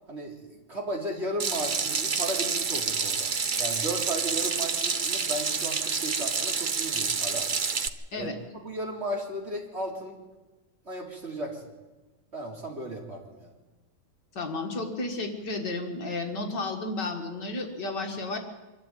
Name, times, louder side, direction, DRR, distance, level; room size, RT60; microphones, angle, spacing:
voice 1, 0.1-7.5 8.1-8.3 8.6-10.2 10.9-11.6 12.3-13.5, right 1 dB, 35° right, -1 dB, 3.7 m, -35 dB
Water tap faucet / Sink (filling or washing), 1.4-7.9, right 5 dB, 50° right, 0.6 m, -28 dB
voice 2, 14.3-18.4, left 2 dB, 60° left, 3 dB, 2.6 m, -32 dB
24.0 x 12.5 x 9.1 m, 1.2 s
omnidirectional pair, 2.1 m